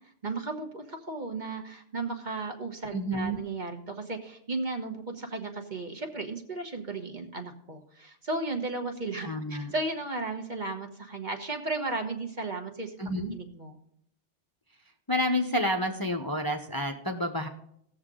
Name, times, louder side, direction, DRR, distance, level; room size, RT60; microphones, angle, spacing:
voice 1, 0.2-12.9 13.3-13.8, right 3 dB, 40° right, 4 dB, 1.3 m, -35 dB
voice 2, 2.9-3.4 9.2-9.7 13.0-13.3 15.1-17.5, equal, 20° left, 4 dB, 0.7 m, -29 dB
17.5 x 6.7 x 3.8 m, 0.70 s
omnidirectional pair, 1.2 m